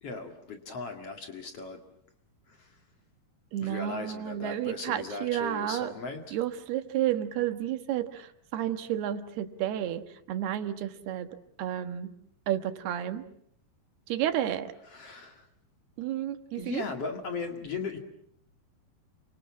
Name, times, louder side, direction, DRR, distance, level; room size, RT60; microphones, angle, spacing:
voice 1, 0.0-1.8 2.5-2.8 3.6-6.4 14.9-15.5 16.6-18.0, left 4 dB, 45° left, 5 dB, 2.8 m, -38 dB
voice 2, 3.5-5.9 6.3-11.3 11.6-12.1 12.5-13.3 14.1-14.7 16.0-16.9, right 11 dB, 85° right, 9 dB, 3.5 m, -31 dB
29.0 x 25.0 x 7.4 m, 0.69 s
omnidirectional pair, 4.5 m